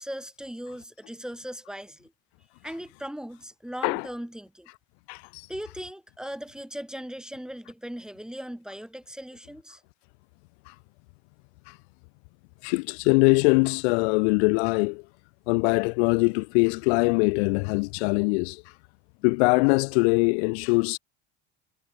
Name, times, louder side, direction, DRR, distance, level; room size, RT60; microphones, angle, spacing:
voice 1, 0.0-2.1 2.6-4.7 5.5-9.8, equal, ahead, 2.0 m, -38 dB
voice 2, 5.1-5.5 10.7-10.8 11.7-11.8 12.6-15.0 15.5-18.6 19.2-21.0, left 32 dB, 70° left, 0.6 m, -22 dB
hypercardioid pair, 90°, 34 cm